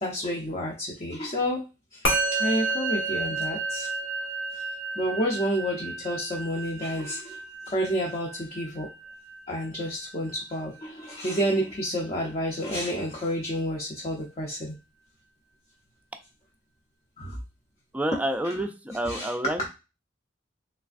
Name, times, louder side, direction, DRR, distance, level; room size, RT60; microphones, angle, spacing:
voice 1, 0.0-1.7 1.9-3.9 4.5-4.6 5.0-7.4 7.7-8.9 9.5-14.8 17.2-17.4 18.4-18.6 19.0-19.3, equal, 35° left, -1 dB, 0.6 m, -30 dB
Musical instrument, 2.0-11.6, right 3 dB, 85° left, 1.4 m, -32 dB
voice 2, 17.9-19.7, right 1 dB, 10° right, 6 dB, 0.3 m, -29 dB
3.2 x 3.2 x 2.4 m, 0.28 s
head